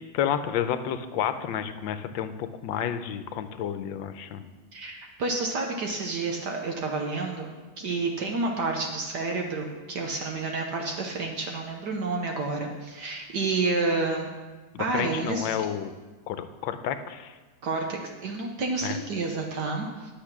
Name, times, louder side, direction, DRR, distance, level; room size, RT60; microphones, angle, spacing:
voice 1, 0.1-4.4 14.7-15.9 16.3-17.4 18.8-19.0, left 9 dB, 85° left, 10 dB, 1.4 m, -30 dB
voice 2, 4.7-7.5 7.8-14.3 14.8-15.6 17.6-20.1, right 3 dB, 65° right, 1 dB, 1.5 m, -29 dB
10.0 x 6.7 x 6.0 m, 1.3 s
omnidirectional pair, 2.1 m